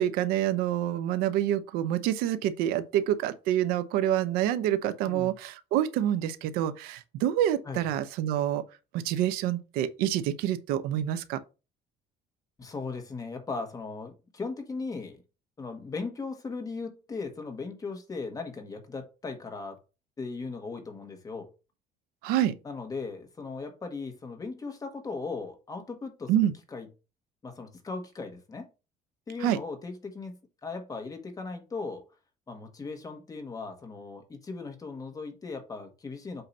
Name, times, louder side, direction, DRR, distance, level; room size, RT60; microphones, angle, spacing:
voice 1, 0.0-8.6 9.0-11.4 22.2-22.5 26.3-26.5 29.4-29.6, right 11 dB, 90° right, 0.8 m, -27 dB
voice 2, 5.1-5.4 7.6-7.9 12.6-15.2 15.6-19.8 20.2-21.5 22.6-26.3 26.7-26.9 27.4-28.7 29.3-32.0 32.5-36.4, left 4 dB, 25° left, 1.5 m, -38 dB
7.8 x 2.9 x 5.3 m
cardioid pair, 120°, 15 cm